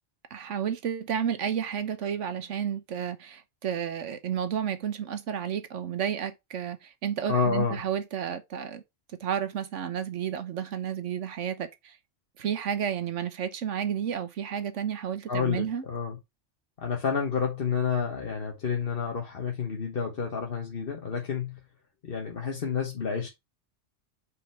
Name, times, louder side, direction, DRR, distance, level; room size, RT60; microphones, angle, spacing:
voice 1, 0.3-8.8 9.2-12.0 12.4-15.8, right 8 dB, 75° right, 1.3 m, -31 dB
voice 2, 7.3-7.8 15.3-16.2 16.8-21.6 22.0-23.3, left 6 dB, 50° left, 1.2 m, -29 dB
5.6 x 5.0 x 4.4 m
omnidirectional pair, 1.3 m